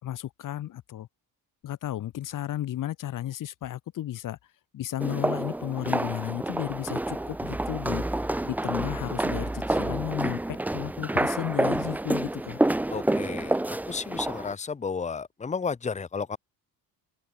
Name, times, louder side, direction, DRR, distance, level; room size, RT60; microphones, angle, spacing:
voice 1, 0.0-1.1 1.6-4.4 4.7-8.0 8.4-12.6, left 12 dB, 55° left, 2.0 m, -33 dB
sound 1, 5.0-14.5, right 1 dB, 5° right, 0.5 m, -28 dB
voice 2, 12.9-13.6 13.9-16.4, left 5 dB, 20° left, 1.6 m, -32 dB
open air
cardioid pair, 170°, 37 cm